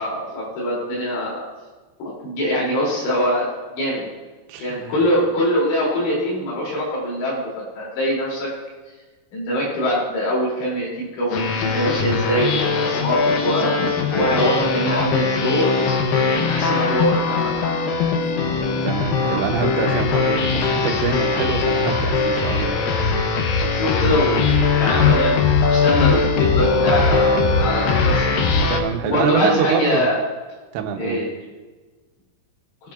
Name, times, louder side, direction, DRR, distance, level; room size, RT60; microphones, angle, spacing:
voice 1, 0.0-1.4 2.0-3.5 3.7-4.0 4.6-8.5 9.3-13.7 14.1-15.8 16.2-17.7 23.7-25.4 25.6-28.5 29.0-30.2 31.0-31.3, equal, 70° left, -4 dB, 5.1 m, -23 dB
voice 2, 4.5-4.9 14.1-14.6 18.5-22.8 28.7-30.0 30.7-31.2, right 8 dB, 80° right, 4 dB, 3.0 m, -26 dB
sound 1, 11.3-28.8, left 4 dB, 90° left, 2.0 m, -20 dB
20.5 x 7.3 x 2.4 m, 1.3 s
omnidirectional pair, 5.2 m